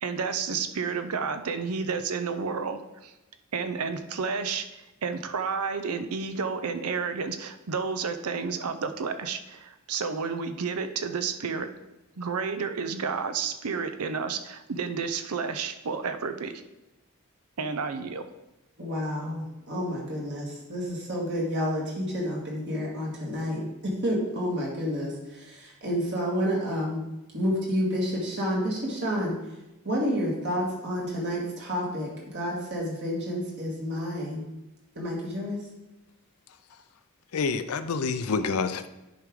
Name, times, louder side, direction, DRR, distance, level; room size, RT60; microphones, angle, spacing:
voice 1, 0.0-3.1 3.5-4.7 5.0-11.7 12.2-16.6 17.6-18.2, right 5 dB, 80° right, 9 dB, 0.6 m, -31 dB
voice 2, 18.8-23.6 24.0-27.0 27.3-29.3 29.8-34.4 35.0-35.6, equal, 55° right, -4 dB, 1.9 m, -29 dB
voice 3, 37.3-38.9, left 4 dB, 75° left, 10 dB, 0.5 m, -27 dB
10.0 x 4.8 x 3.7 m, 0.97 s
head